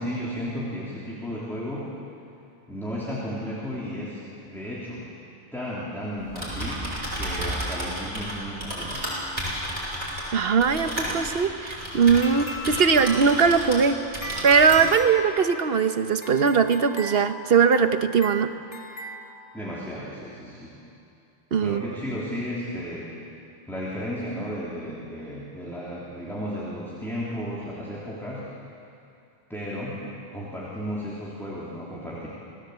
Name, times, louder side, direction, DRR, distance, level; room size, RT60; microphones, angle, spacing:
voice 1, 0.0-1.9 2.7-5.1 5.5-9.1 19.5-20.8 21.6-23.1 23.7-28.4 29.5-30.0 30.3-32.3, equal, ahead, -6 dB, 3.4 m, -34 dB
Typing, 6.2-13.9 14.1-15.0, equal, 30° right, 6.4 m, -32 dB
voice 2, 10.3-14.0 14.4-18.5 21.5-21.8, right 6 dB, 55° right, 9 dB, 1.2 m, -20 dB
sound 1, 12.2-19.9, equal, 70° left, 2.6 m, -38 dB
27.5 x 17.5 x 8.2 m, 2.6 s
omnidirectional pair, 1.2 m